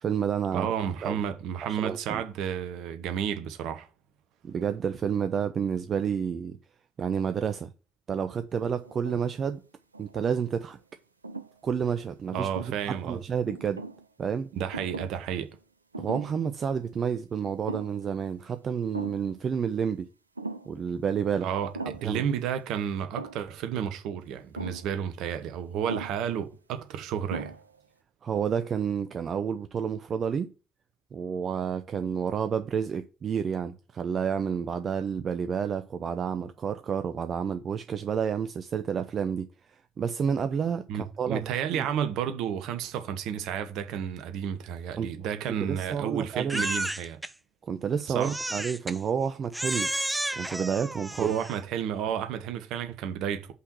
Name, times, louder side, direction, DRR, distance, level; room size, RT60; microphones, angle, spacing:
voice 1, 0.0-0.7 1.0-1.2 1.7-2.2 4.4-6.6 7.0-7.7 8.1-9.6 10.0-10.8 11.6-13.8 14.2-14.5 16.0-20.1 20.7-21.5 22.0-22.2 28.2-30.5 31.1-41.4 41.7-41.9 45.0-45.1 45.6-46.7 47.6-49.9 50.3-51.3, right 7 dB, 45° right, 0.7 m, -30 dB
voice 2, 0.5-3.9 12.3-13.2 14.5-15.5 21.4-21.7 22.0-27.5 40.9-47.2 48.1-48.4 51.2-53.5, right 8 dB, 65° right, 1.2 m, -31 dB
sound 1, 8.8-9.4 9.9-10.7 11.2-11.5 12.3-13.0 13.5-14.1 14.7-15.3 15.5-15.6 15.9-16.5 16.8-16.9 17.5-18.1 18.4-18.5 18.9-19.3 20.4-20.8 21.8-22.2 23.2-23.5 24.6-24.9 25.9-26.3 26.9-27.0 27.3-27.8, right 3 dB, 90° right, 0.5 m, -39 dB
Crying sobbing, 46.5-47.3 48.2-49.0 49.5-51.6, right 1 dB, 10° right, 0.8 m, -32 dB
5.8 x 5.7 x 6.2 m
figure-of-eight pair, 45°, 0 cm